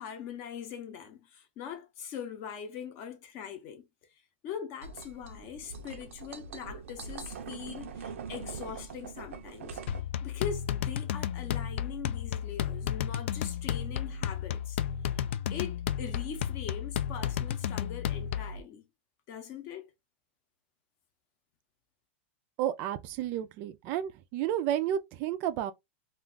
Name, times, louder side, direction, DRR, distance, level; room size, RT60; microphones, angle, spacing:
voice 1, 0.0-3.8 4.4-9.8 10.2-14.8 15.5-18.9 19.3-19.9, left 8 dB, 35° left, 0.7 m, -42 dB
sound 1, 4.8-10.0, right 5 dB, 90° right, 0.5 m, -43 dB
sound 2, 9.9-18.6, left 9 dB, 70° left, 0.3 m, -33 dB
voice 2, 22.6-25.7, right 11 dB, 30° right, 0.4 m, -31 dB
2.4 x 2.3 x 3.6 m
supercardioid pair, 165°, 7 cm